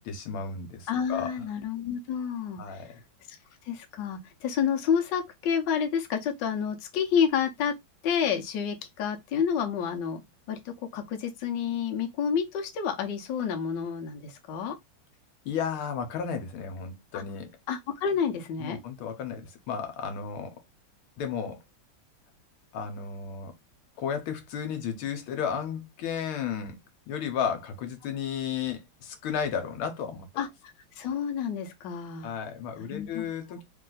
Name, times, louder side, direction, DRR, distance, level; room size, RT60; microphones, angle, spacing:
voice 1, 0.0-1.4 2.6-3.0 15.4-17.6 18.6-20.5 21.2-21.6 22.7-23.5 24.0-26.8 27.1-30.3 32.2-33.6, left 7 dB, 85° left, 1.7 m, -33 dB
voice 2, 0.9-2.9 3.3-3.4 3.6-7.7 8.0-14.8 17.1-17.2 17.7-18.8 30.4-30.5 31.0-32.4 32.8-33.3, left 7 dB, 65° left, 1.4 m, -29 dB
3.4 x 3.2 x 3.8 m
omnidirectional pair, 2.3 m